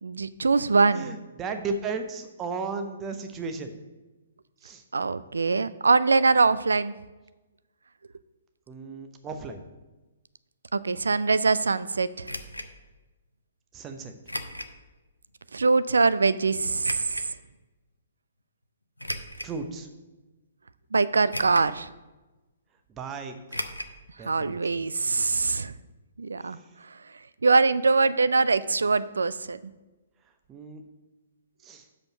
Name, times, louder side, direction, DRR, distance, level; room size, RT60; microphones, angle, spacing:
voice 1, 0.0-1.2 4.9-6.9 10.7-12.3 15.5-17.2 20.9-21.9 24.3-25.7 26.2-26.6 27.4-29.6, right 4 dB, 70° right, 15 dB, 0.3 m, -23 dB
voice 2, 0.9-3.7 4.6-4.8 8.7-9.6 13.7-14.1 19.4-19.9 22.9-23.7 24.2-24.8 30.5-30.8 31.6-31.9, right 4 dB, 20° right, 6 dB, 0.8 m, -35 dB
sound 1, 12.2-12.7 14.3-14.8 15.3-15.4 16.8-17.3 19.0-19.6 20.2-20.3 21.3-21.8 22.0-22.1 23.5-23.9 24.2-24.3 24.6-24.7, left 1 dB, 85° left, 0.6 m, -35 dB
6.4 x 5.2 x 6.9 m, 1.1 s
figure-of-eight pair, 125°, 0 cm